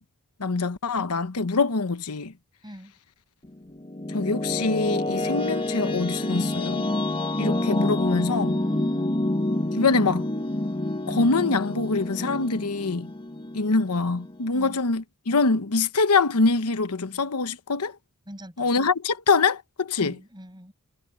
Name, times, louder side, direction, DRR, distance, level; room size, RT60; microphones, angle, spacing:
voice 1, 0.4-2.3 4.1-6.9 7.4-8.5 9.7-10.2 11.1-13.1 13.5-17.9 18.6-20.1, left 4 dB, 90° left, 1.0 m, -24 dB
voice 2, 2.6-2.9 8.1-9.3 14.5-14.8 18.3-18.7 20.0-20.7, equal, 20° right, 7.5 m, -41 dB
sound 1, 3.4-14.5, left 1 dB, 25° left, 1.3 m, -28 dB
head